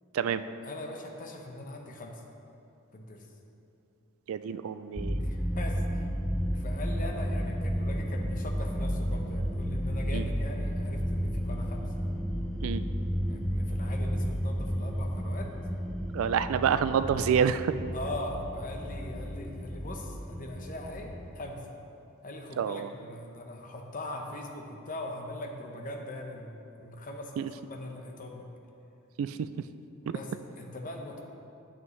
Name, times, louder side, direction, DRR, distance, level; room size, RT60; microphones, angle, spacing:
voice 1, 0.6-2.2 2.9-3.3 5.2-6.1 6.5-11.9 13.3-15.5 17.9-21.6 22.2-28.4 30.0-31.2, left 1 dB, 40° left, 2 dB, 0.9 m, -41 dB
voice 2, 4.3-5.3 10.1-10.2 12.6-12.8 16.1-17.8 22.6-22.9 27.4-27.5 29.2-29.5 30.1-30.2, right 7 dB, 70° right, 13 dB, 0.3 m, -28 dB
sound 1, 4.9-21.3, equal, ahead, 0.4 m, -32 dB
11.0 x 7.3 x 3.2 m, 2.7 s
head